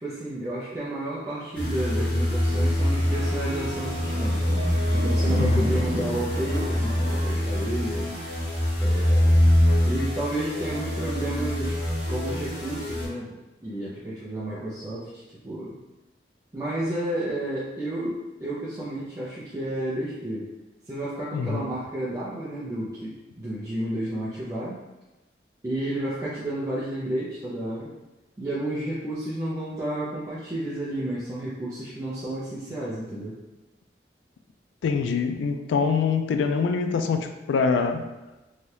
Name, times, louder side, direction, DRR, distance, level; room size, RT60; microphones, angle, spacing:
voice 1, 0.0-8.1 8.8-9.4 9.8-11.8 12.1-15.8 16.5-20.5 20.8-24.8 25.6-27.9 28.4-33.4, right 1 dB, 20° right, -9 dB, 0.4 m, -31 dB
sound 1, 1.5-7.3, right 1 dB, 60° right, 0.6 m, -36 dB
sound 2, 1.6-13.1, left 1 dB, 30° left, 1.3 m, -24 dB
voice 2, 5.3-5.7 21.3-21.7 34.8-38.1, left 5 dB, 85° left, 7 dB, 0.3 m, -24 dB
2.7 x 2.3 x 3.2 m, 1.1 s
head